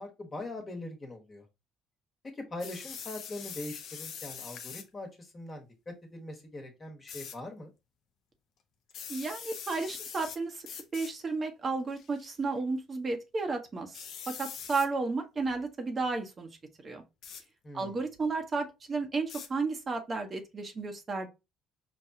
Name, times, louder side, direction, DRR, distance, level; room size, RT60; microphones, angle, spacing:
voice 1, 0.0-1.4 2.3-7.7 17.6-18.0, left 2 dB, 35° left, 1.3 m, -42 dB
sound 1, 2.6-4.9 7.1-7.3 8.9-10.4 10.6-11.1 11.9-12.3 13.9-14.9 17.2-17.4 19.3-19.5, left 7 dB, 60° left, 0.6 m, -43 dB
voice 2, 9.1-10.6 10.9-16.5 16.8-17.0 17.7-21.3, right 3 dB, 35° right, 0.9 m, -33 dB
4.9 x 2.3 x 2.7 m
hypercardioid pair, 65°, 0 cm